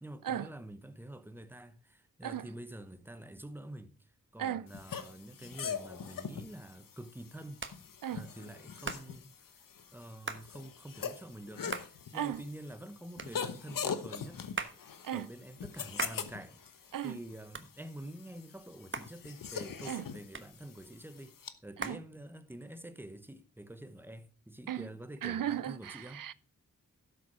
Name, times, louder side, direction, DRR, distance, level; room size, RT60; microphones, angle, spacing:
voice 1, 0.0-7.6 8.1-9.7 9.9-14.8 15.1-26.3, right 1 dB, 5° right, 1.2 m, -47 dB
sound 1, 4.7-21.5, left 7 dB, 80° left, 1.0 m, -43 dB
Hands, 6.3-22.8, right 4 dB, 35° right, 1.3 m, -45 dB
voice 2, 25.2-26.3, right 10 dB, 75° right, 0.5 m, -35 dB
12.0 x 7.6 x 4.9 m
cardioid pair, 65°, 33 cm